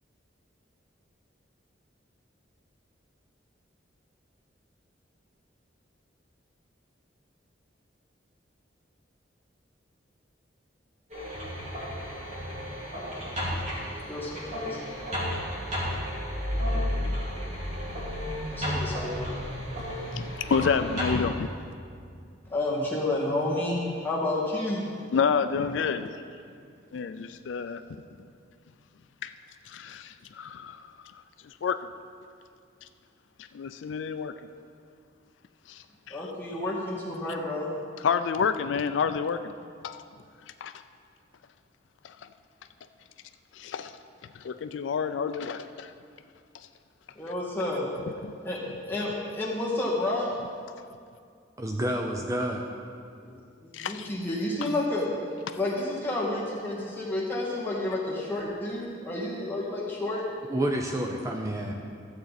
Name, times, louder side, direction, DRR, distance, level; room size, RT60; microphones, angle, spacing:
sound 1, 11.1-21.2, equal, 40° right, 2.4 m, -32 dB
voice 1, 14.0-14.8 17.8-19.3 22.5-24.9 36.1-37.7 47.2-47.9 48.4-48.6 48.9-50.4 53.2-53.4 53.6-55.1 55.6-60.2, left 2 dB, 10° left, -6 dB, 1.9 m, -30 dB
voice 2, 20.0-21.5 25.1-26.1 26.9-27.8 29.2-29.3 29.7-30.9 31.6-31.8 33.5-34.3 35.7-36.2 38.0-39.4 39.8-40.0 40.6-40.7 42.0-42.1 43.6-43.9 44.4-45.9 48.2-48.3 53.7-54.1, left 6 dB, 80° left, 10 dB, 0.4 m, -29 dB
voice 3, 51.6-52.7 60.5-61.7, right 1 dB, 15° right, 2 dB, 0.5 m, -29 dB
13.0 x 7.8 x 4.1 m, 2.3 s
head